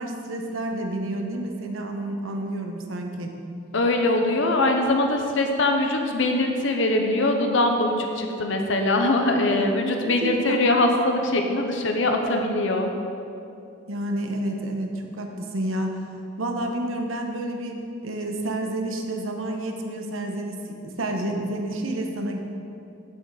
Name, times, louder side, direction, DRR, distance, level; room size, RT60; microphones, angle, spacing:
voice 1, 0.0-3.3 9.5-9.8 10.0-10.7 13.9-16.0 16.4-22.4, right 1 dB, 90° right, 3 dB, 1.0 m, -30 dB
voice 2, 3.7-12.9, left 2 dB, 70° left, 3 dB, 0.8 m, -22 dB
8.1 x 7.9 x 4.8 m, 2.7 s
head